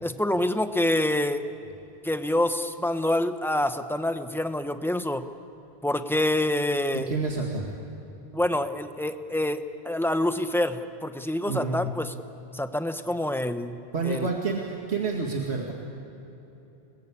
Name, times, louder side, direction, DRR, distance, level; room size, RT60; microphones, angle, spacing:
voice 1, 0.0-1.5 2.0-5.2 5.8-7.1 8.3-12.1 12.5-13.8 14.0-14.3, left 1 dB, ahead, 8 dB, 1.0 m, -26 dB
voice 2, 6.9-7.7 11.5-11.8 13.9-15.7, right 4 dB, 80° right, -1 dB, 2.5 m, -29 dB
29.0 x 21.0 x 8.6 m, 3.0 s
omnidirectional pair, 1.1 m